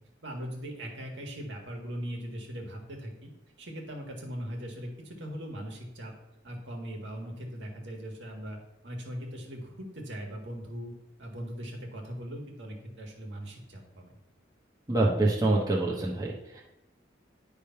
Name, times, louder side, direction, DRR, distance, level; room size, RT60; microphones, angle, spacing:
voice 1, 0.2-3.3 3.6-6.1 6.4-8.6 8.8-10.9 11.2-14.1, equal, 65° right, 1 dB, 1.7 m, -40 dB
voice 2, 14.9-16.6, right 2 dB, 20° right, -3 dB, 1.1 m, -26 dB
10.0 x 3.4 x 5.7 m, 0.89 s
head